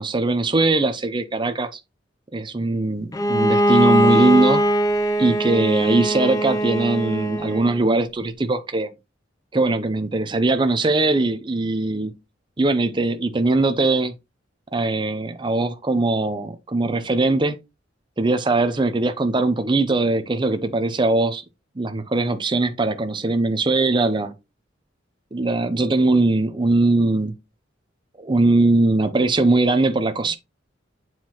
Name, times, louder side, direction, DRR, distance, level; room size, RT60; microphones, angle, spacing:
voice 1, 0.0-1.8 2.3-4.6 5.2-8.9 9.5-12.1 12.6-14.1 14.7-17.6 18.2-21.4 21.8-24.3 25.3-27.3 28.2-30.4, right 2 dB, 25° right, 0.6 m, -20 dB
Bowed string instrument, 3.1-7.8, equal, 20° left, 0.5 m, -20 dB
7.4 x 4.6 x 3.0 m
head